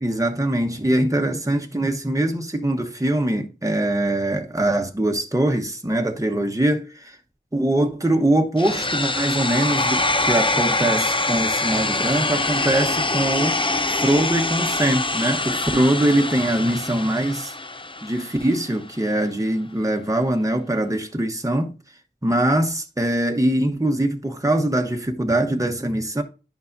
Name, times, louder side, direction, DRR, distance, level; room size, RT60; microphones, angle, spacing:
voice 1, 0.0-7.2 7.5-13.6 13.9-17.5 18.0-21.7 22.2-26.2, right 1 dB, 15° right, 1.0 m, -22 dB
sound 1, 8.6-18.6, left 2 dB, 25° left, 0.5 m, -24 dB
11.0 x 5.5 x 2.6 m
wide cardioid pair, 45°, 19 cm